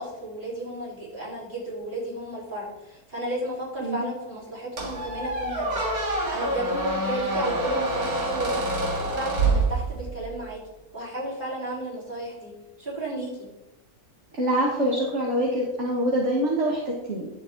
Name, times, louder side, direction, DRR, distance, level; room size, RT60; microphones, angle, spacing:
voice 1, 0.0-8.6 9.0-10.6 10.9-12.5 12.8-13.5, right 1 dB, 35° right, -8 dB, 4.5 m, -33 dB
Squeak, 4.8-10.3, right 2 dB, 80° right, 2.4 m, -26 dB
voice 2, 14.4-17.3, right 1 dB, 50° right, -1 dB, 1.7 m, -25 dB
11.5 x 7.3 x 3.9 m, 0.97 s
omnidirectional pair, 1.5 m